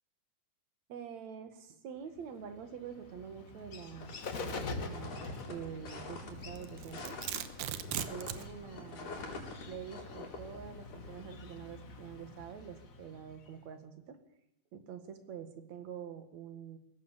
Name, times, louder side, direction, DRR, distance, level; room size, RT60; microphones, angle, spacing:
voice 1, 0.9-7.2 7.9-14.2 14.7-16.8, right 7 dB, 60° right, 8 dB, 3.0 m, -46 dB
Bird, 2.2-13.6, left 3 dB, 45° left, 1.0 m, -46 dB
sound 1, 4.0-11.5, left 3 dB, 65° left, 5.0 m, -47 dB
Domestic sounds home sounds, 6.6-8.5, right 12 dB, 80° right, 2.5 m, -38 dB
20.5 x 17.5 x 7.3 m, 0.78 s
omnidirectional pair, 3.8 m